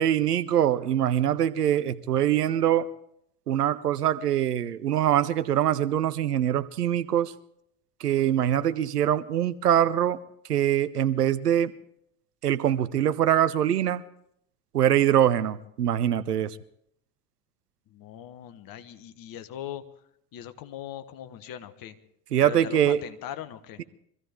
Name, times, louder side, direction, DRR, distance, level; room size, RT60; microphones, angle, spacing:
voice 1, 0.0-2.9 3.5-7.3 8.0-10.2 10.5-11.7 12.4-14.0 14.7-16.6 22.3-23.0, right 10 dB, 85° right, 0.7 m, -23 dB
voice 2, 17.9-19.8 20.3-21.9 22.4-23.8, left 11 dB, 50° left, 1.4 m, -40 dB
24.0 x 15.0 x 3.6 m
figure-of-eight pair, 65°, 46 cm